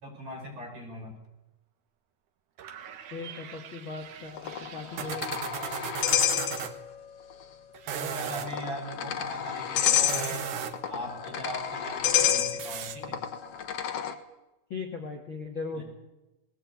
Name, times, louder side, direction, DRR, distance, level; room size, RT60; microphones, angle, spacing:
voice 1, 0.0-1.2 7.9-10.5 10.9-13.2 15.7-15.8, equal, 45° right, 0 dB, 6.8 m, -39 dB
sound 1, 2.6-6.7 7.7-8.5 9.9-10.9 12.6-13.0, right 8 dB, 60° right, 2.5 m, -37 dB
voice 2, 3.1-5.3 7.9-8.1 14.7-15.8, left 4 dB, 40° left, 1 dB, 2.0 m, -38 dB
sound 2, 4.4-7.0 7.3-7.4 8.3-14.2, left 10 dB, 60° left, 1.7 m, -29 dB
20.0 x 17.0 x 8.8 m, 0.99 s
omnidirectional pair, 4.3 m